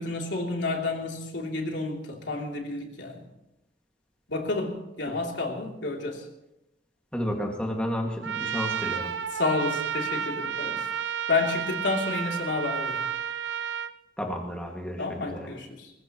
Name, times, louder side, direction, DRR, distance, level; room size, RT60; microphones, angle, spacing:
voice 1, 0.0-3.2 4.3-6.2 9.3-10.9 11.3-13.0 15.0-15.9, left 3 dB, 80° left, 1 dB, 3.0 m, -30 dB
voice 2, 7.1-9.1 14.2-15.5, equal, 5° left, 0 dB, 2.0 m, -32 dB
Trumpet, 8.2-13.9, right 8 dB, 75° right, 0.7 m, -31 dB
23.0 x 20.0 x 3.0 m, 0.90 s
head